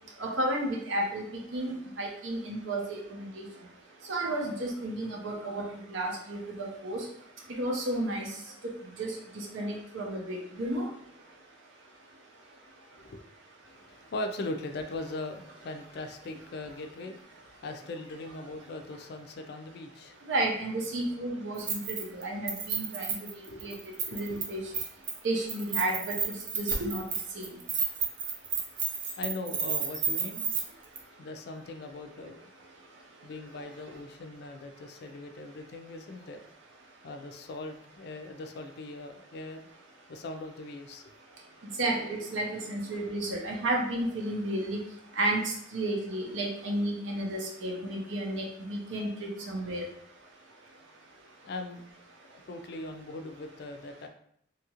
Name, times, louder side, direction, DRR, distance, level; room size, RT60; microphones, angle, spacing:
voice 1, 0.2-1.3 1.5-3.5 4.1-5.6 5.9-7.0 7.6-8.3 8.6-8.7 9.0-10.9 20.3-23.1 23.6-23.7 24.1-24.6 25.2-26.1 26.6-27.0 27.4-27.5 41.8-44.8 45.2-49.9, right 1 dB, 85° right, 0 dB, 0.6 m, -32 dB
voice 2, 13.7-20.2 23.5-23.8 24.1-24.4 29.2-30.5 31.2-32.4 33.2-36.4 37.0-39.6 40.1-41.1 51.4-51.8 52.5-54.1, left 2 dB, 55° left, 6 dB, 0.3 m, -40 dB
Keys jangling, 21.6-22.2 22.5-24.4 24.7-25.2 25.5-30.6 31.0-31.1, right 5 dB, 45° right, 0.5 m, -31 dB
2.8 x 2.4 x 2.9 m, 0.67 s
head